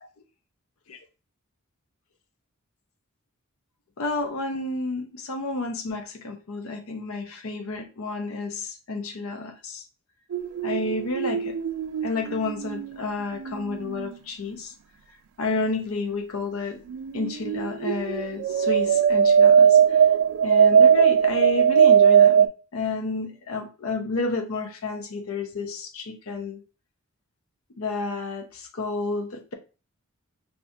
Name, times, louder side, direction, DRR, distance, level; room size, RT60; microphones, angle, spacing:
voice 1, 4.0-9.8 10.6-11.6 12.0-14.7 15.4-16.8 17.1-19.8 20.4-22.4 22.7-26.6 27.8-29.5, left 3 dB, 80° left, 5 dB, 0.6 m, -30 dB
sound 1, 10.3-14.1 16.9-22.5, right 8 dB, 85° right, 0.3 m, -19 dB
3.5 x 2.7 x 2.6 m, 0.33 s
head